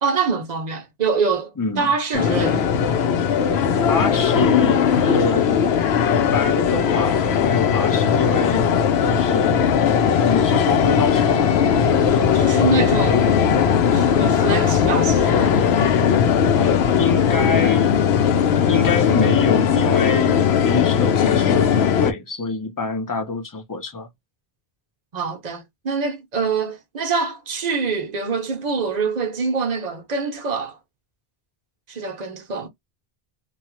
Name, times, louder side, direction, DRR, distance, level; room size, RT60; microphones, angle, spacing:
voice 1, 0.0-1.5 1.8-2.7 12.3-13.4 13.9-15.7 25.1-30.8 31.9-32.7, right 4 dB, 45° right, 0.8 m, -25 dB
voice 2, 1.6-1.9 3.9-8.7 9.1-9.6 10.1-12.4 16.5-24.1, left 4 dB, 25° left, 0.6 m, -26 dB
sound 1, 2.1-22.1, left 7 dB, 85° left, 0.8 m, -18 dB
2.8 x 2.3 x 3.0 m
omnidirectional pair, 1.0 m